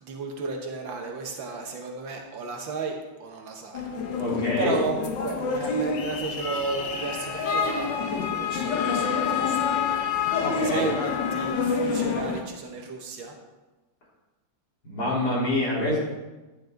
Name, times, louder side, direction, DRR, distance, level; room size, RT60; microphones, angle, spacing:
voice 1, 0.0-3.8 4.6-9.9 10.2-13.3, right 4 dB, 85° right, 2 dB, 2.0 m, -34 dB
sound 1, 3.7-12.4, left 5 dB, 75° left, 1.7 m, -27 dB
voice 2, 4.2-4.8 10.4-10.8 14.8-16.0, left 1 dB, 55° left, -6 dB, 4.2 m, -26 dB
12.0 x 9.2 x 3.9 m, 1.1 s
omnidirectional pair, 2.0 m